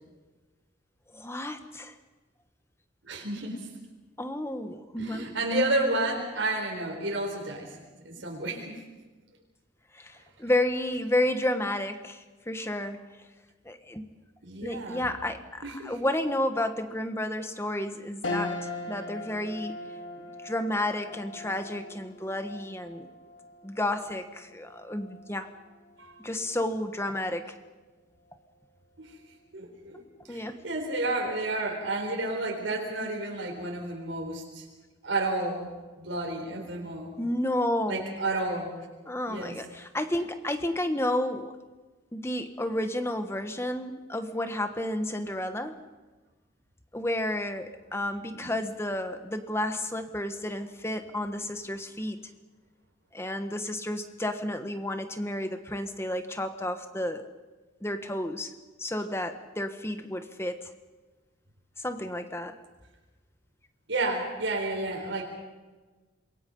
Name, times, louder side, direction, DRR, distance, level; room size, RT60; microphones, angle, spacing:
voice 1, 1.1-1.9 4.2-5.3 9.9-13.0 13.6-14.1 14.6-19.8 20.4-23.1 23.6-25.5 26.2-27.6 30.3-30.5 37.2-38.2 39.1-41.5 42.1-45.8 46.9-52.2 53.1-57.2 57.8-58.5 58.8-60.7 61.8-62.5, left 1 dB, 15° left, 8 dB, 1.4 m, -31 dB
voice 2, 3.0-3.7 5.0-7.8 8.0-8.8 14.4-15.1 15.6-15.9 26.0-26.1 29.0-29.2 29.5-30.0 30.3-34.7 35.0-35.7 36.0-37.1 37.9-38.7 39.3-39.6 48.3-48.5 63.9-65.2, right 2 dB, 80° right, 0 dB, 4.1 m, -31 dB
sound 1, 18.2-27.8 28.3-28.4 29.7-30.2, left 2 dB, 80° left, 2.5 m, -41 dB
27.0 x 22.5 x 5.5 m, 1.3 s
head